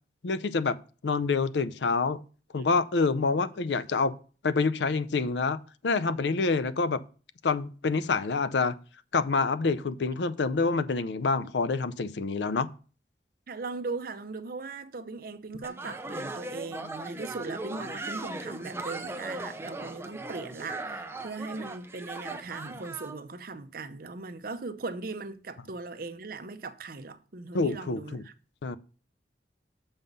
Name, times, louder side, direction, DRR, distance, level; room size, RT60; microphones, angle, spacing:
voice 1, 0.2-0.8 1.0-2.2 2.5-4.1 4.4-7.0 7.4-8.8 9.1-12.7 27.5-28.2 28.6-28.8, left 4 dB, 75° left, 0.5 m, -27 dB
voice 2, 13.5-28.3, right 3 dB, 55° right, 0.7 m, -39 dB
sound 1, 15.6-23.2, right 2 dB, 15° right, 0.6 m, -38 dB
7.1 x 5.4 x 5.3 m
head